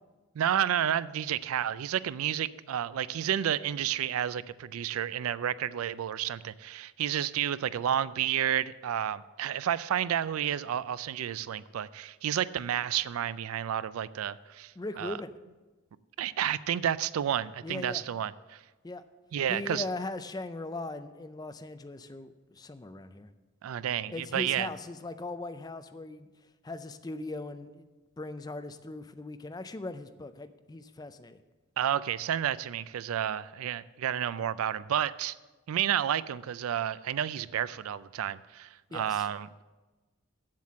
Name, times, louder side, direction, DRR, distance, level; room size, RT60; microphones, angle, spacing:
voice 1, 0.4-15.2 16.2-18.6 19.3-19.8 23.6-24.7 31.8-35.3 35.7-39.6, right 10 dB, 85° right, 17 dB, 0.4 m, -31 dB
voice 2, 14.8-15.3 17.6-18.0 18.8-19.0 19.5-23.3 24.1-26.3 26.6-27.9 28.2-31.4 38.9-39.3, left 2 dB, 20° left, 11 dB, 0.4 m, -39 dB
7.5 x 7.5 x 7.3 m, 1.2 s
head